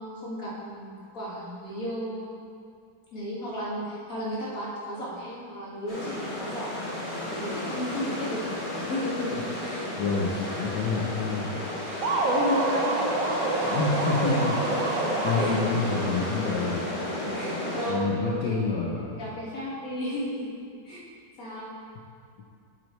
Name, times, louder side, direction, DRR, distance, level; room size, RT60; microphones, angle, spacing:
voice 1, 0.0-2.3 3.1-6.8 7.3-8.5 8.9-9.9 12.2-14.5 15.4-15.6 15.9-16.2 17.3-18.8 19.1-20.6 20.8-21.0 21.4-21.7, left 1 dB, 55° left, -7 dB, 2.4 m, -34 dB
sound 1, 5.9-17.9, left 1 dB, 30° left, 1.9 m, -32 dB
voice 2, 10.0-11.5 13.7-14.5 14.9-16.9 17.9-19.2, left 4 dB, 80° left, -4 dB, 1.5 m, -28 dB
sound 2, 12.0-15.9, right 3 dB, 60° right, 1.2 m, -27 dB
8.3 x 7.9 x 3.2 m, 2.2 s
omnidirectional pair, 1.8 m